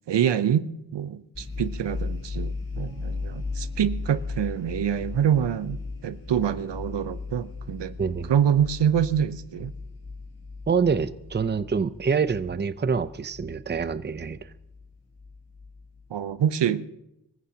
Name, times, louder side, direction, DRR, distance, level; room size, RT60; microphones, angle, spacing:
voice 1, 0.1-7.9 8.3-9.7 16.1-16.9, right 9 dB, 80° right, 0.7 m, -26 dB
sound 1, 1.3-16.0, left 4 dB, 35° left, 3.3 m, -37 dB
Piano, 2.8-10.1, left 7 dB, 10° right, 3.4 m, -61 dB
voice 2, 8.0-8.3 10.7-14.4, right 5 dB, 25° right, 0.6 m, -26 dB
24.5 x 15.0 x 2.8 m
wide cardioid pair, 80°, 42 cm